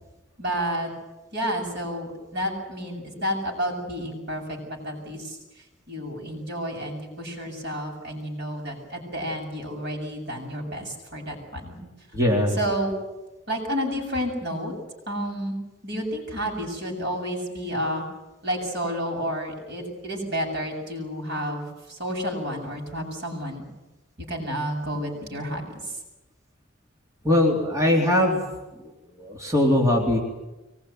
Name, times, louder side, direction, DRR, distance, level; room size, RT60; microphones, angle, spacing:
voice 1, 0.4-0.9 1.3-5.4 5.9-11.7 12.5-12.9 13.5-14.7 15.1-15.6 15.8-18.0 18.4-23.7 24.3-25.7, equal, 60° right, 1 dB, 7.5 m, -30 dB
voice 2, 12.1-12.6 27.2-28.4 29.2-30.2, left 1 dB, 15° right, -2 dB, 3.9 m, -20 dB
24.0 x 20.5 x 9.4 m, 1.1 s
head